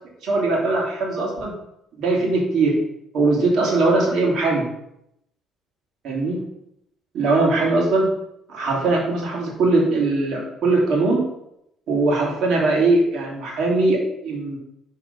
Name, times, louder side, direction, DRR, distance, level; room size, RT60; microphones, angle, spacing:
voice 1, 0.2-1.5 2.0-2.8 3.1-4.7 6.0-6.4 7.1-8.1 8.5-11.3 11.9-14.6, right 2 dB, 65° right, -2 dB, 2.7 m, -20 dB
6.5 x 4.4 x 5.4 m, 0.79 s
cardioid pair, 90°, 0 cm